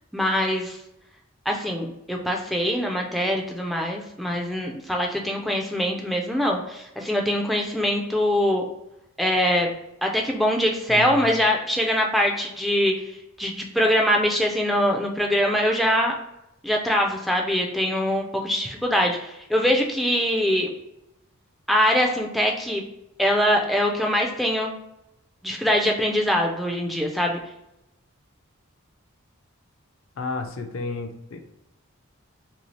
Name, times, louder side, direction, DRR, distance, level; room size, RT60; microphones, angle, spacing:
voice 1, 0.1-0.8 1.5-8.6 9.2-9.7 10.0-12.9 13.4-16.1 16.6-20.7 21.7-22.8 23.2-24.7 25.4-27.4, equal, ahead, 0 dB, 0.3 m, -23 dB
voice 2, 10.9-11.3 30.2-31.4, left 3 dB, 70° left, 5 dB, 0.5 m, -32 dB
2.8 x 2.7 x 3.0 m, 0.87 s
head